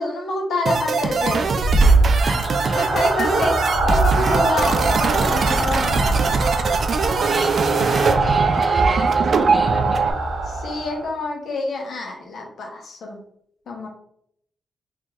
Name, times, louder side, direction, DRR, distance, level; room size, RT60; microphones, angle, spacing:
voice 1, 0.0-1.5 2.7-6.4 10.5-13.2 13.7-13.9, left 2 dB, 70° left, 0 dB, 0.9 m, -27 dB
sound 1, 0.7-10.1, right 4 dB, 60° right, 0.3 m, -21 dB
sound 2, 1.1-11.1, right 3 dB, 90° right, 0.7 m, -22 dB
voice 2, 2.2-2.8 3.1-3.4 7.2-10.1, equal, ahead, 0 dB, 1.0 m, -36 dB
Keyboard (musical), 2.8-9.6, left 1 dB, 45° left, 1.3 m, -38 dB
3.0 x 2.7 x 3.6 m, 0.68 s
cardioid pair, 85°, 0 cm